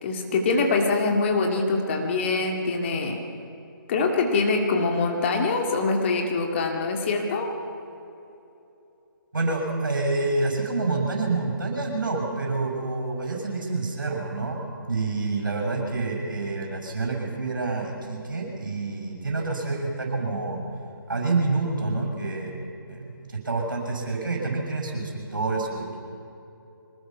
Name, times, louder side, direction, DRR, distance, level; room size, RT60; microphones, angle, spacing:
voice 1, 0.0-3.2 3.9-7.5, left 3 dB, 30° left, 2 dB, 2.2 m, -24 dB
voice 2, 9.3-20.6 21.1-22.5 22.9-26.0, right 3 dB, 60° right, 1 dB, 6.9 m, -28 dB
24.5 x 20.0 x 5.9 m, 2.8 s
figure-of-eight pair, 145°, 12 cm